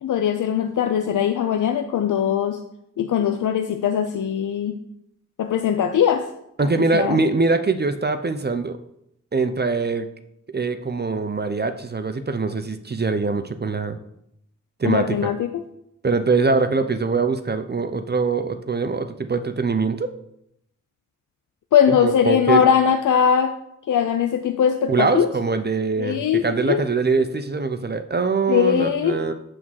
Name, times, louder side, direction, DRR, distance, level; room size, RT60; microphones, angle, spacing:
voice 1, 0.0-2.6 3.0-4.7 5.4-6.3 6.6-7.2 14.8-15.6 21.7-23.5 23.9-25.3 26.0-26.8 28.5-29.2, left 8 dB, 85° left, 7 dB, 0.5 m, -20 dB
voice 2, 6.6-8.8 9.3-10.1 10.5-14.0 14.8-15.3 16.0-20.1 21.9-22.6 24.9-29.3, right 4 dB, 35° right, 9 dB, 0.6 m, -23 dB
7.8 x 3.6 x 6.3 m, 0.78 s
cardioid pair, 65°, 30 cm